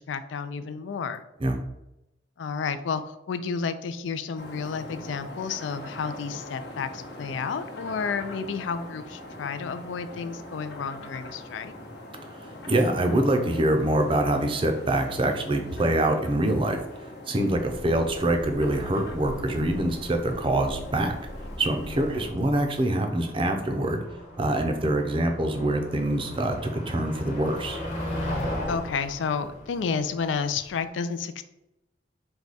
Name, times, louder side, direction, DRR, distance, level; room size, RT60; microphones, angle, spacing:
voice 1, 0.0-1.2 2.4-11.7 28.7-31.4, left 5 dB, 80° left, 11 dB, 0.4 m, -31 dB
sound 1, 4.4-22.3, left 1 dB, 55° left, 0.8 m, -42 dB
voice 2, 12.2-21.2 21.6-24.0 24.4-27.9, right 1 dB, 30° right, 4 dB, 0.5 m, -25 dB
sound 2, 17.5-22.9, equal, 20° left, 0.8 m, -42 dB
Motor vehicle (road), 20.5-30.8, left 1 dB, 35° left, 1.1 m, -37 dB
4.7 x 2.3 x 4.0 m, 0.91 s
head